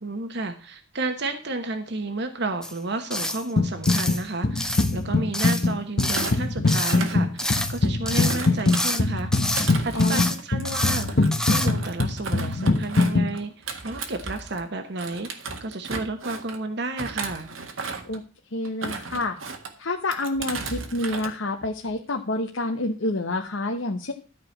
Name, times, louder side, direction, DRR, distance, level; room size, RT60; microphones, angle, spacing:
voice 1, 0.0-9.3 9.8-15.3 15.6-17.5, right 2 dB, 60° right, 7 dB, 1.1 m, -32 dB
sound 1, 2.6-2.8 3.1-3.4 3.8-4.2 4.6-5.0 5.3-5.7 6.0-6.4 6.7-7.0 7.4-7.8 8.1-9.0 9.3-9.7 10.0-10.4 10.6-11.0 11.3-11.7, left 1 dB, 5° left, 0.8 m, -28 dB
sound 2, 3.6-4.2 4.4-13.3, left 3 dB, 55° left, 0.9 m, -23 dB
Thump thud, 6.1-7.9 8.3-14.6 15.0-16.6 17.0-18.2 18.6-19.7 20.1-21.3 21.6-22.0, right 4 dB, 85° right, 1.8 m, -35 dB
voice 2, 9.9-10.3 18.0-18.2 18.5-19.4 19.8-24.1, left 2 dB, 75° left, 3 dB, 1.1 m, -28 dB
13.0 x 5.0 x 7.2 m, 0.37 s
head